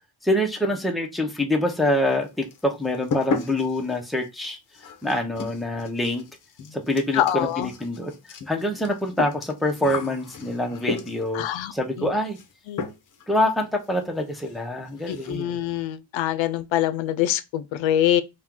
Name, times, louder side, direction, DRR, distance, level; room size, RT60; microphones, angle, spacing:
voice 1, 0.2-4.6 5.0-6.2 6.7-8.1 8.5-11.5 11.7-12.4 13.3-15.5, left 1 dB, ahead, 0.6 m, -25 dB
sound 1, 1.7-2.2 2.5-11.4 12.3-12.5 12.8-13.3 13.5-13.6 14.0-14.1 14.4-14.6 14.9-15.4, left 5 dB, 45° left, 0.7 m, -34 dB
voice 2, 7.1-7.7 11.3-11.7 12.0-12.1 12.7-12.8 15.1-18.2, left 12 dB, 75° left, 0.5 m, -24 dB
4.4 x 2.3 x 3.7 m
cardioid pair, 125°, 46 cm